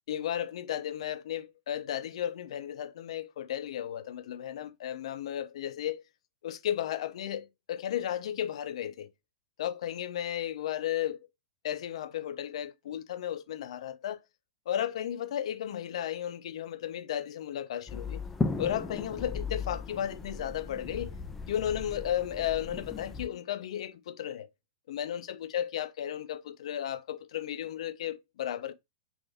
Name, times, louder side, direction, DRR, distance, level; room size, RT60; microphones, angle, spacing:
voice 1, 0.1-6.0 6.4-9.1 9.6-11.2 11.6-14.2 14.7-18.2 18.6-21.2 21.5-24.5 24.9-28.7, left 10 dB, 75° left, 0.5 m, -34 dB
sound 1, 17.9-23.3, left 4 dB, 10° left, 0.3 m, -36 dB
3.4 x 2.6 x 3.3 m
supercardioid pair, 155°, 3 cm